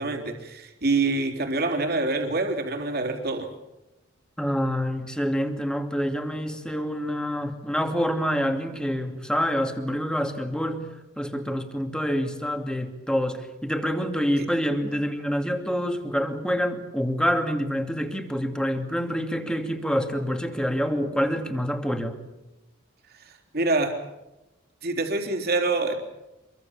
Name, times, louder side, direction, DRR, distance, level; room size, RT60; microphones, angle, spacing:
voice 1, 0.0-3.5 14.4-14.5 23.1-24.0 24.8-25.9, right 3 dB, 50° right, 3 dB, 3.7 m, -26 dB
voice 2, 4.4-10.9 11.2-22.2, equal, 5° left, 5 dB, 2.6 m, -27 dB
26.5 x 23.5 x 7.4 m, 0.97 s
head